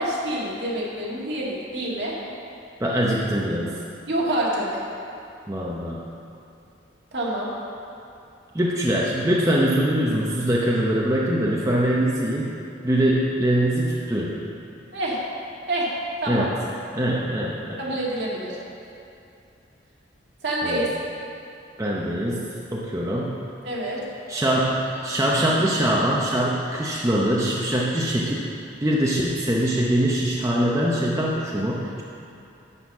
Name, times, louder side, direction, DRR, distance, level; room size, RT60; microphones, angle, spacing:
voice 1, 0.0-2.1 4.1-4.8 7.1-7.5 14.9-15.2 15.7-15.9 16.2-16.5 17.8-18.6 20.4-20.9 23.6-24.0, right 1 dB, 65° right, -5 dB, 2.0 m, -26 dB
voice 2, 2.8-3.8 5.5-6.0 8.5-12.5 12.8-14.4 16.3-16.5 16.9-17.8 20.6-20.9 21.8-22.4 22.7-23.4 24.3-28.5 28.8-32.0, right 1 dB, 15° right, -4 dB, 0.7 m, -23 dB
11.0 x 4.2 x 7.1 m, 2.7 s
head